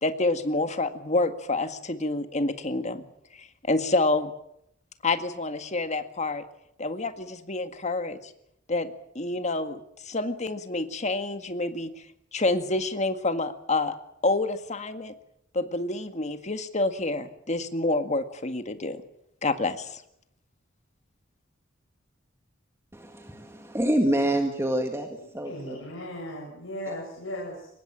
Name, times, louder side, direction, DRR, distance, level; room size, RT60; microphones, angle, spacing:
voice 1, 0.0-3.0 3.3-4.3 5.0-6.4 6.8-8.3 8.7-11.9 12.3-14.0 14.2-15.1 15.5-19.0 19.4-20.0, left 2 dB, 35° left, 9 dB, 1.9 m, -28 dB
voice 2, 22.9-25.1 25.3-25.8, right 1 dB, 15° right, 4 dB, 2.0 m, -26 dB
voice 3, 25.4-27.7, equal, 75° left, -2 dB, 7.1 m, -37 dB
24.0 x 20.5 x 7.6 m, 0.77 s
head